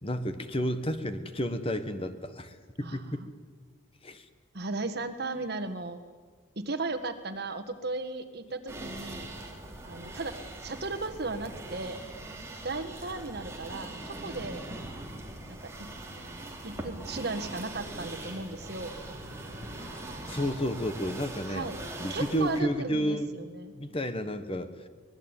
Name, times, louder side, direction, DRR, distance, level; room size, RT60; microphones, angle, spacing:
voice 1, 0.0-3.3 4.0-4.2 20.3-21.7 22.0-23.4 23.7-24.9, equal, 30° left, 10 dB, 1.4 m, -31 dB
voice 2, 2.8-3.3 4.5-6.0 6.5-9.3 9.8-10.3 10.6-12.0 12.6-14.7 15.5-15.6 16.6-18.9 21.5-23.7, right 3 dB, 55° right, 8 dB, 1.7 m, -36 dB
sound 1, 8.7-22.6, right 1 dB, 15° right, 3.4 m, -41 dB
24.0 x 20.5 x 9.1 m, 1.5 s
head